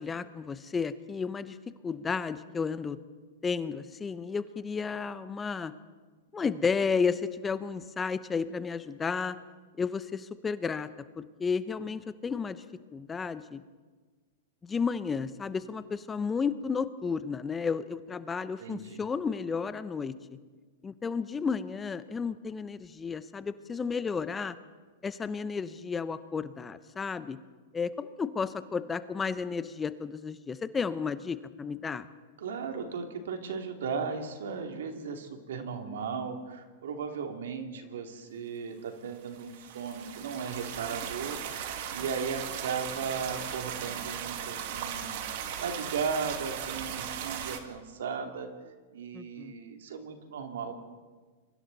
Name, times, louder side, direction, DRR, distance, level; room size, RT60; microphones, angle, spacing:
voice 1, 0.0-1.6 1.8-3.0 3.4-5.7 6.3-9.4 9.8-10.9 11.2-12.6 12.9-13.6 14.6-20.1 20.8-24.6 25.0-27.4 27.7-32.1 49.1-49.5, left 5 dB, 15° left, 13 dB, 0.8 m, -32 dB
voice 2, 18.6-19.0 32.4-41.4 41.9-45.2 45.6-48.5 48.9-50.7, right 5 dB, 80° right, 4 dB, 2.9 m, -36 dB
sound 1, 39.2-47.6, right 9 dB, 60° right, 2.3 m, -37 dB
28.5 x 23.5 x 4.2 m, 1.4 s
hypercardioid pair, 125°, 0 cm